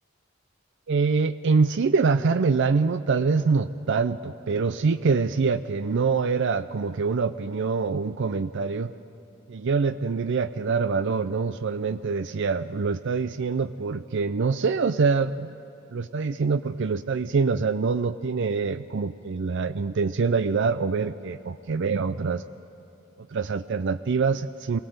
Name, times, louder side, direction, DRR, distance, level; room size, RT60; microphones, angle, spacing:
voice 1, 0.9-8.9 9.5-15.5 15.9-22.4 23.2-24.8, right 4 dB, 60° right, 13 dB, 0.5 m, -25 dB
23.0 x 18.5 x 7.9 m, 2.7 s
head